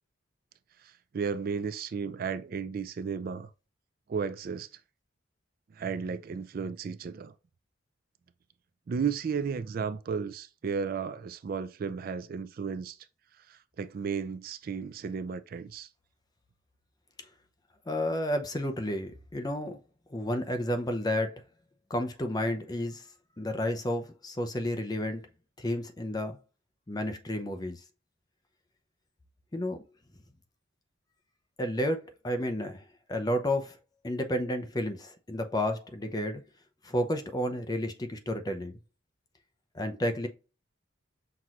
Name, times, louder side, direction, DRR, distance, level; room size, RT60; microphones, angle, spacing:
voice 1, 0.8-3.5 4.1-4.7 5.7-7.3 8.9-13.0 13.5-15.9, right 6 dB, 45° right, 0.3 m, -34 dB
voice 2, 17.9-19.8 20.1-21.4 21.9-23.0 23.4-25.3 25.6-26.4 26.9-27.8 29.5-29.8 31.6-32.8 33.1-33.8 34.0-36.4 36.8-38.7 39.7-40.3, left 1 dB, 20° left, 0.5 m, -31 dB
5.9 x 2.9 x 2.4 m
head